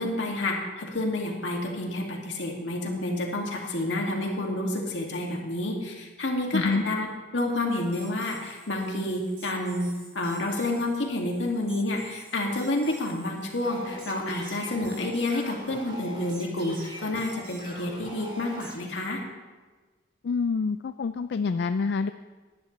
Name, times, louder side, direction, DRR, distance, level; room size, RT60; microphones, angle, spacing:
voice 1, 0.0-7.1 7.3-9.9 10.1-19.2, left 1 dB, 85° left, 0 dB, 2.3 m, -29 dB
sound 1, 7.7-18.7, right 1 dB, 30° right, 4.7 m, -45 dB
voice 2, 20.2-22.1, left 4 dB, 65° left, 11 dB, 0.4 m, -26 dB
18.5 x 11.0 x 3.3 m, 1.3 s
head